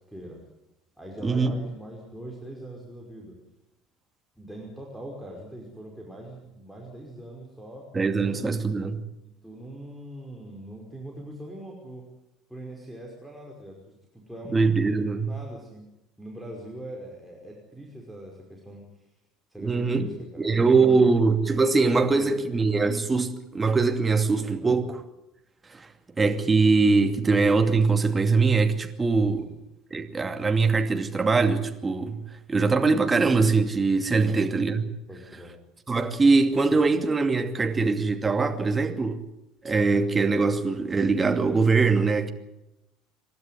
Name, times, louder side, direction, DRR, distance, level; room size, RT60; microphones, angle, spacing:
voice 1, 0.1-0.4 1.0-3.4 4.4-7.9 8.2-8.8 9.4-12.0 12.5-13.8 14.1-15.9 16.2-18.8 19.5-20.1 20.5-21.2 21.9-22.6 24.6-24.8 29.2-29.6 34.2-34.5 35.1-35.6, right 1 dB, ahead, 5.4 m, -42 dB
voice 2, 7.9-9.0 14.5-15.3 19.6-20.1 20.4-25.0 25.7-25.9 26.2-29.5 29.9-32.2 32.5-34.8 35.9-39.2 39.6-42.3, right 4 dB, 20° right, 2.5 m, -22 dB
28.0 x 12.5 x 9.8 m
figure-of-eight pair, 65°, 0 cm